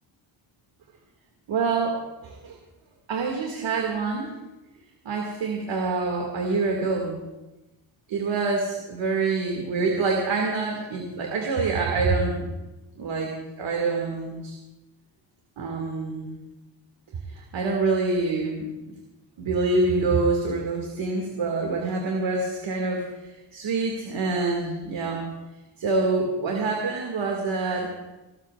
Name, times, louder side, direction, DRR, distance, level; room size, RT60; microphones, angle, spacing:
voice 1, 1.5-2.6 3.1-4.4 5.0-7.2 8.1-12.4 13.0-13.3 13.6-14.5 15.6-16.3 17.3-18.9 19.4-25.3 25.8-27.9, right 3 dB, 65° right, 0 dB, 2.4 m, -26 dB
29.0 x 13.0 x 2.5 m, 1.0 s
wide cardioid pair, 145°, 49 cm